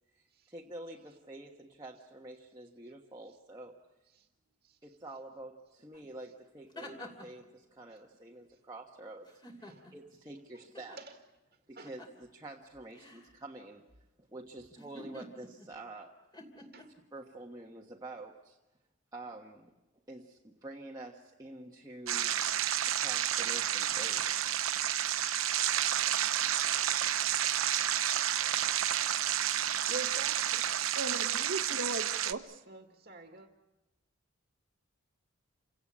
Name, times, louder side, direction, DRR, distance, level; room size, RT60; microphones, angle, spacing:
voice 1, 0.1-3.8 4.8-9.3 9.6-11.0 11.7-13.8 14.3-16.1 17.1-18.6 19.1-19.7 20.1-24.5, right 2 dB, 20° right, -1 dB, 1.3 m, -48 dB
sound 1, 5.9-6.0 6.4-7.4 9.3-10.1 10.7-11.0 11.8-12.2 12.9-13.3 14.8-15.7 16.3-16.8, left 1 dB, 20° left, 2.9 m, -49 dB
voice 2, 16.6-16.9 29.9-30.7 32.7-33.5, right 3 dB, 45° right, 4 dB, 1.8 m, -46 dB
sound 2, 22.1-32.3, right 11 dB, 80° right, 0.9 m, -30 dB
voice 3, 30.9-32.6, right 2 dB, 65° right, 9 dB, 1.3 m, -37 dB
28.5 x 17.5 x 8.6 m, 1.1 s
head